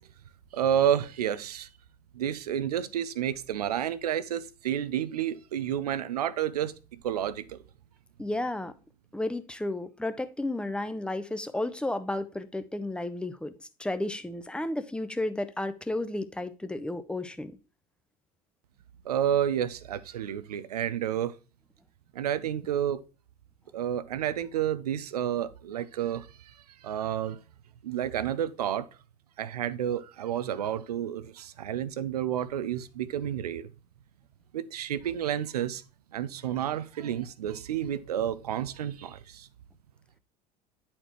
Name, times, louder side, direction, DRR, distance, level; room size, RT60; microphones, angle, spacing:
voice 1, 0.5-1.7 2.1-7.6 19.0-21.3 22.1-23.0 23.7-26.5 26.8-27.4 27.8-28.9 29.4-33.7 34.5-35.8 36.1-39.5, right 10 dB, 80° right, 0.6 m, -30 dB
voice 2, 8.2-8.7 9.1-17.6, left 1 dB, 5° left, 0.7 m, -33 dB
10.0 x 4.3 x 3.0 m
hypercardioid pair, 70°, 20 cm